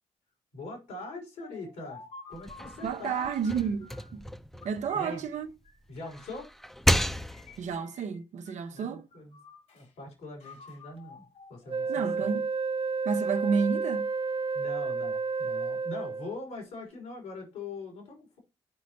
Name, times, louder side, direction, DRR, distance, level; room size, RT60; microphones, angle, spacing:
voice 1, 0.5-2.0 2.3-3.3 4.9-5.3 5.9-6.5 8.7-9.4 9.7-12.4 14.5-18.4, left 2 dB, 85° left, 3.8 m, -42 dB
sound 1, 1.4-4.2 4.6-6.4 7.1-8.2 8.5-9.9 10.4-12.2, left 4 dB, 70° left, 2.7 m, -52 dB
sound 2, 2.3-5.5 5.9-7.7, equal, ahead, 0.7 m, -32 dB
voice 2, 2.8-4.2 4.6-5.5 7.6-9.1 11.9-12.5 13.0-14.1, right 6 dB, 65° right, 1.0 m, -30 dB
Wind instrument woodwind instrument, 11.7-16.4, right 4 dB, 45° right, 0.5 m, -31 dB
9.7 x 5.1 x 2.9 m
hypercardioid pair, 50°, 13 cm